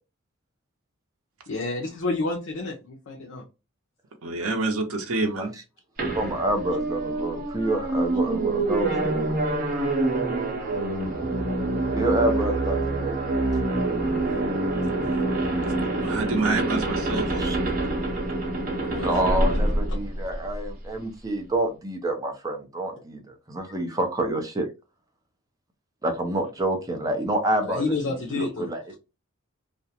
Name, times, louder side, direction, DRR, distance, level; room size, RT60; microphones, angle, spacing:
voice 1, 1.5-3.4 18.8-19.6 27.6-28.7, left 3 dB, 65° left, -1 dB, 0.5 m, -30 dB
voice 2, 4.2-5.5 16.0-17.4, right 3 dB, 85° right, 3 dB, 0.6 m, -27 dB
voice 3, 5.2-5.6 6.1-9.2 11.9-13.2 17.1-17.6 19.0-24.7 26.0-28.8, right 1 dB, 15° right, 3 dB, 0.5 m, -28 dB
sound 1, 6.0-20.7, right 2 dB, 45° right, 0.8 m, -26 dB
2.4 x 2.1 x 2.8 m, 0.28 s
head